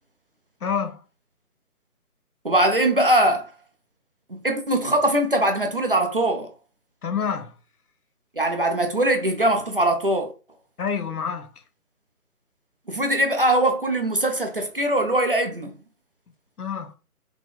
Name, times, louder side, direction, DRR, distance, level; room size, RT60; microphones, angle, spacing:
voice 1, 0.6-1.0 7.0-7.5 10.8-11.5 16.6-16.9, left 6 dB, 75° left, 0.9 m, -27 dB
voice 2, 2.4-3.5 4.3-6.5 8.4-10.3 12.9-15.7, right 1 dB, 40° right, 0.5 m, -21 dB
3.8 x 3.0 x 3.4 m
figure-of-eight pair, 155°, 46 cm